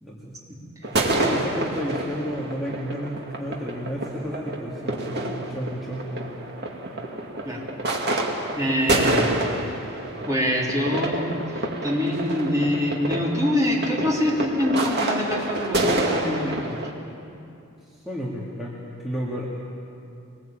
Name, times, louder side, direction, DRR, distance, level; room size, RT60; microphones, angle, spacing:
voice 1, 0.0-0.3 0.9-6.3 18.0-19.5, equal, ahead, -6 dB, 2.3 m, -32 dB
sound 1, 0.8-16.9, right 1 dB, 50° right, 2.2 m, -28 dB
voice 2, 8.6-9.4 10.3-11.3 11.8-16.9, left 1 dB, 15° right, -3 dB, 3.7 m, -25 dB
24.0 x 20.0 x 8.9 m, 2.6 s
head